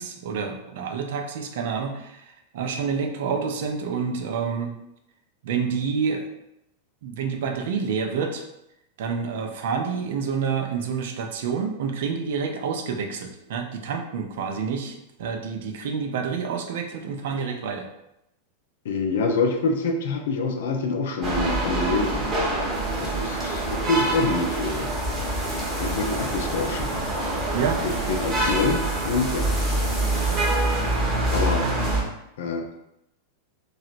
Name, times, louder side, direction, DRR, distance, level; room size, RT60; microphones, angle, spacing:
voice 1, 0.0-4.7 5.4-6.3 7.0-8.4 9.0-17.9 27.5-27.8, right 6 dB, 55° right, 4 dB, 0.4 m, -28 dB
voice 2, 18.8-22.3 23.0-24.9 25.8-26.9 27.8-29.5 31.3-31.8 32.4-32.7, left 3 dB, 60° left, 4 dB, 0.4 m, -26 dB
sound 1, 21.2-32.0, right 2 dB, 30° right, 0.8 m, -26 dB
sound 2, 22.7-31.1, left 1 dB, ahead, 0.9 m, -37 dB
3.1 x 2.8 x 2.4 m, 0.84 s
figure-of-eight pair, 90°, 0 cm